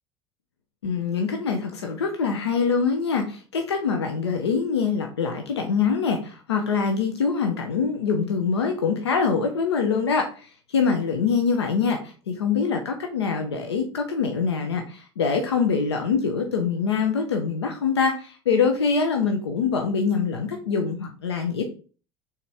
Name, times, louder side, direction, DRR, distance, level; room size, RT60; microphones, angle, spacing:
voice 1, 0.8-21.6, left 5 dB, 90° left, 4 dB, 0.7 m, -24 dB
4.2 x 3.6 x 3.4 m, 0.38 s
hypercardioid pair, 80°, 14 cm